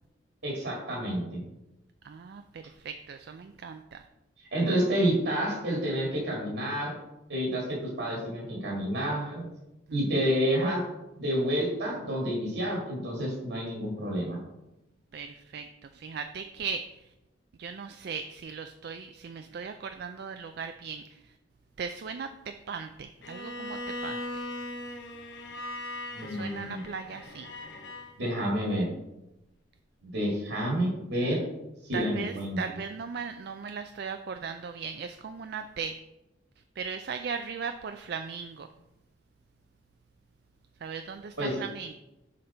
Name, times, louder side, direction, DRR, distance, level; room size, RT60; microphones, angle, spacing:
voice 1, 0.4-1.4 4.5-6.9 7.3-9.4 9.9-10.8 11.2-14.4 26.1-26.8 28.2-28.9 30.0-31.4 31.8-32.6 41.4-41.6, equal, 75° right, -3 dB, 2.0 m, -29 dB
voice 2, 2.0-4.0 15.1-16.8 17.6-21.2 21.8-22.3 22.7-24.5 26.2-27.5 31.9-36.0 36.8-38.7 40.8-41.9, right 6 dB, 60° right, 7 dB, 0.3 m, -38 dB
Bowed string instrument, 23.2-28.1, left 1 dB, 75° left, 1.0 m, -39 dB
6.5 x 5.3 x 4.3 m, 0.94 s
head